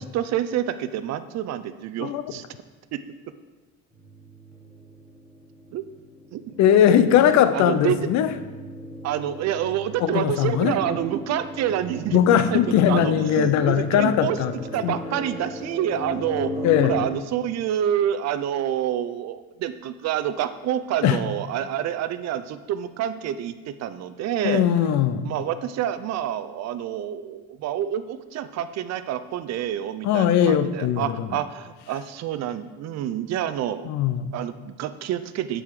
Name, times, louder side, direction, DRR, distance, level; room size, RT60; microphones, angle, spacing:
voice 1, 0.0-2.4 2.9-3.0 5.7-5.8 6.3-6.8 7.3-8.1 9.0-12.6 12.9-14.4 14.7-16.5 16.8-24.6 25.2-33.9 34.3-35.6, right 10 dB, 50° right, 11 dB, 0.6 m, -28 dB
sound 1, 3.9-17.0, equal, 5° right, 1.7 m, -37 dB
voice 2, 6.6-8.3 10.0-10.7 12.1-14.5 14.8-15.0 16.6-17.0 21.0-21.2 24.4-25.4 30.0-31.3 33.8-34.3, left 9 dB, 55° left, 12 dB, 0.7 m, -20 dB
7.9 x 7.4 x 4.8 m, 1.2 s
cardioid pair, 110°, 33 cm